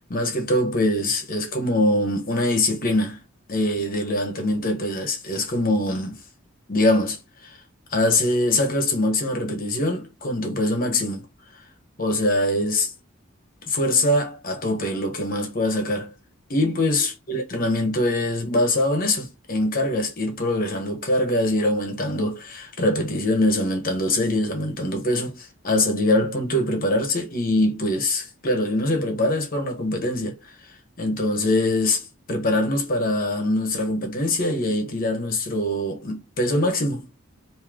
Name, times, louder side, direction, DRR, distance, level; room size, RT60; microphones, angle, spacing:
voice 1, 0.1-3.2 3.5-6.2 6.7-7.6 7.9-11.2 12.0-12.9 13.7-16.1 16.5-30.4 31.0-37.1, left 1 dB, 45° left, 1.2 m, -23 dB
3.2 x 2.8 x 3.7 m
head